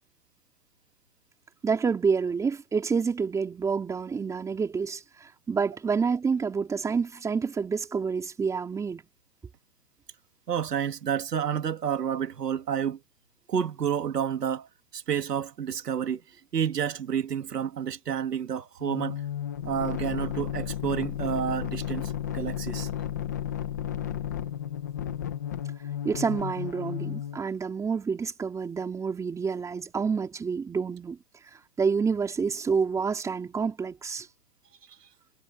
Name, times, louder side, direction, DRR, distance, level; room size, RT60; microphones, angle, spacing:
voice 1, 1.6-9.0 26.0-31.2 31.8-34.3, right 5 dB, 5° right, 3.9 m, -28 dB
voice 2, 10.5-13.0 13.5-14.7 14.9-16.2 16.5-19.2 19.6-22.9, right 8 dB, 75° right, 2.5 m, -29 dB
sound 1, 18.8-27.4, left 10 dB, 10° left, 0.6 m, -33 dB
hypercardioid pair, 165°, 48 cm